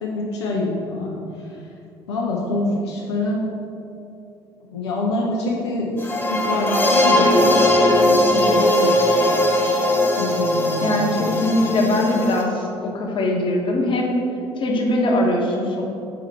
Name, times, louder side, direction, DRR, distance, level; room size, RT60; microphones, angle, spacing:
voice 1, 0.0-1.1 2.1-3.6 4.7-6.0 6.3-7.3 8.0-9.0 10.2-11.3, left 2 dB, 75° left, -3 dB, 0.7 m, -25 dB
sound 1, 6.0-12.4, left 1 dB, 15° left, 1.4 m, -19 dB
voice 2, 10.8-14.2 14.6-15.8, left 1 dB, 35° left, -1 dB, 1.2 m, -21 dB
6.7 x 4.9 x 4.1 m, 2.8 s
figure-of-eight pair, 55°, 14 cm